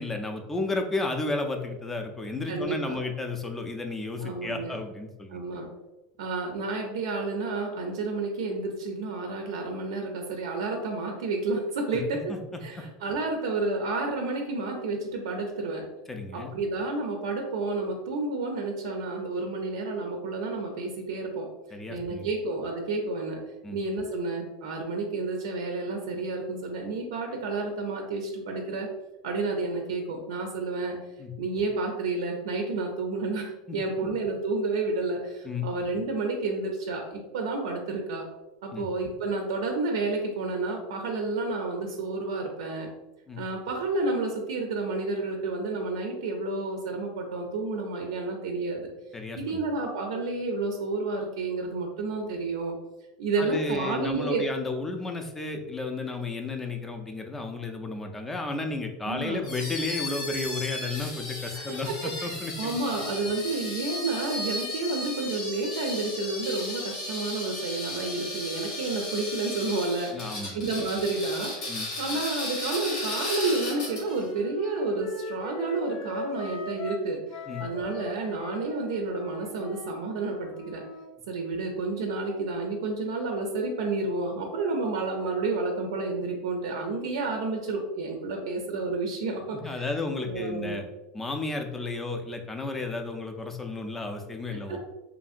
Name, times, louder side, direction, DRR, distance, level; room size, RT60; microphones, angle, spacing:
voice 1, 0.0-5.4 11.9-12.0 12.3-12.4 12.8-12.9 16.1-16.5 21.7-22.3 23.6-23.8 31.2-31.3 35.4-35.7 38.7-38.9 43.3-43.4 49.1-49.6 53.4-63.0 70.1-70.6 71.7-71.9 77.5-77.7 89.5-90.8 91.1-94.8, left 3 dB, 10° left, 4 dB, 0.3 m, -33 dB
voice 2, 2.5-3.0 4.2-4.8 5.3-5.7 6.2-12.3 12.6-15.9 16.3-21.5 21.9-23.4 23.7-28.9 29.2-31.0 31.4-38.2 38.6-42.9 43.4-48.9 49.4-52.8 53.2-54.5 59.0-59.5 61.5-62.3 62.6-80.8 81.3-89.8 90.2-90.8 94.5-94.8, right 3 dB, 85° right, 2 dB, 0.4 m, -30 dB
sound 1, 59.4-74.2, left 2 dB, 85° left, 1.1 m, -35 dB
Wind instrument woodwind instrument, 73.6-81.1, left 3 dB, 65° left, 0.8 m, -39 dB
2.8 x 2.6 x 2.4 m, 1.0 s
supercardioid pair, 135°, 3 cm